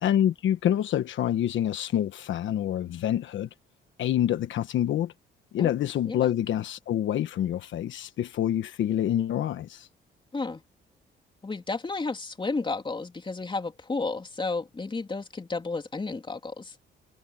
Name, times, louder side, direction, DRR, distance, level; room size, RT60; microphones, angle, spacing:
voice 1, 0.0-3.5 4.0-5.1 5.5-9.9, left 11 dB, 75° left, 1.3 m, -27 dB
voice 2, 11.4-16.7, left 3 dB, 25° left, 3.3 m, -32 dB
cardioid pair, 90°, 20 cm